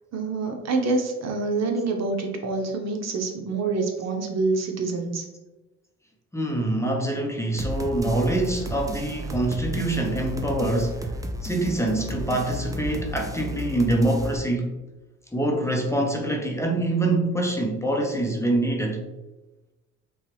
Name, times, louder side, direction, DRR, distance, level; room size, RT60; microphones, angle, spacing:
voice 1, 0.1-5.3, right 3 dB, 60° right, 2 dB, 0.9 m, -26 dB
voice 2, 6.3-11.1 11.4-14.7 15.3-19.0, right 1 dB, 10° left, 0 dB, 0.8 m, -25 dB
sound 1, 7.6-14.4, equal, 10° right, 0.5 m, -33 dB
5.6 x 2.3 x 3.4 m, 1.1 s
cardioid pair, 90°, 30 cm